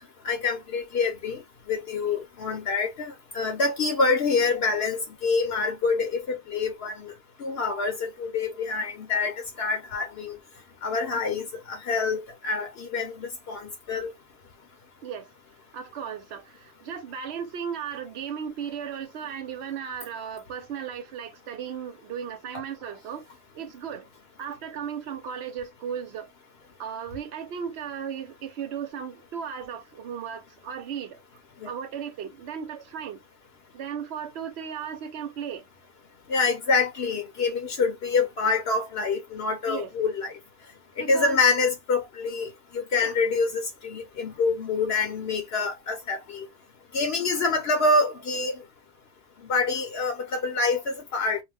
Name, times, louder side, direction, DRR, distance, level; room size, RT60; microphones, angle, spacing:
voice 1, 0.2-1.4 1.7-7.1 7.4-10.4 10.8-14.1 31.6-31.7 36.3-40.3 41.0-46.5 46.9-48.6 49.5-51.4, left 4 dB, 65° left, 0.8 m, -26 dB
voice 2, 15.7-23.3 23.5-24.1 24.4-26.3 26.8-31.2 31.6-33.2 33.7-35.7 39.7-39.9 41.0-41.4 42.9-43.1, right 7 dB, 70° right, 0.9 m, -36 dB
2.4 x 2.1 x 3.2 m
omnidirectional pair, 1.2 m